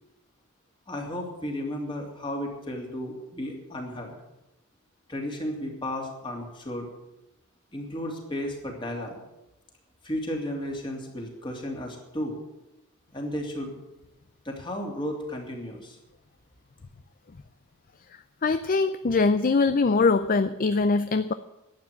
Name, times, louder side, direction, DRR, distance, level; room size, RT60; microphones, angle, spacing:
voice 1, 0.9-4.2 5.1-6.9 7.7-9.2 10.0-12.4 13.1-13.7 14.4-16.0, left 1 dB, 25° left, 1 dB, 2.8 m, -33 dB
voice 2, 18.4-21.3, left 4 dB, 40° left, 11 dB, 0.5 m, -22 dB
12.0 x 8.7 x 9.3 m, 0.92 s
head